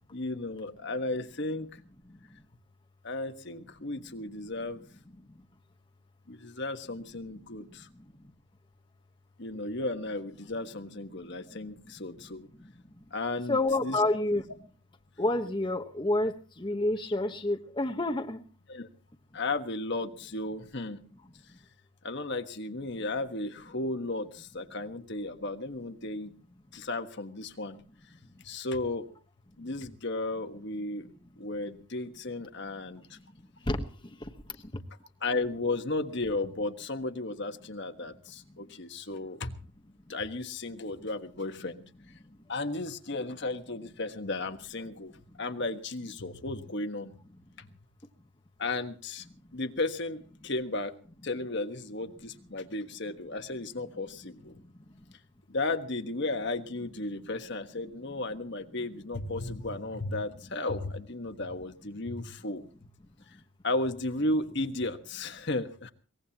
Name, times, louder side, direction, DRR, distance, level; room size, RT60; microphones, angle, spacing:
voice 1, 0.1-1.7 3.0-4.8 6.3-7.9 9.4-12.5 13.1-14.0 18.7-18.9 19.3-21.0 22.0-26.3 26.7-27.8 28.4-29.1 29.6-31.1 31.4-33.2 35.2-39.5 40.1-41.8 42.5-47.1 47.6-47.7 48.6-49.2 49.5-50.9 51.2-54.6 55.5-62.7 63.3-63.4 63.6-65.9, left 2 dB, 55° left, 7 dB, 1.4 m, -34 dB
voice 2, 13.5-14.4 15.2-18.4 33.7-33.9 34.2-34.3, left 2 dB, 20° left, 4 dB, 1.1 m, -28 dB
23.0 x 19.5 x 2.9 m, 0.38 s
head